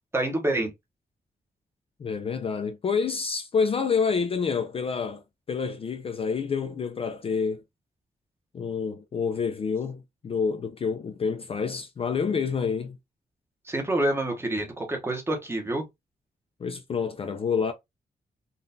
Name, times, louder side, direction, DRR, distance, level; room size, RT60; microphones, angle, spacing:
voice 1, 0.1-0.7 13.7-15.8, right 1 dB, 15° right, 0.8 m, -27 dB
voice 2, 2.0-7.6 8.5-13.0 16.6-17.7, left 5 dB, 35° left, 0.4 m, -28 dB
3.7 x 2.3 x 2.6 m
wide cardioid pair, 170°, 16 cm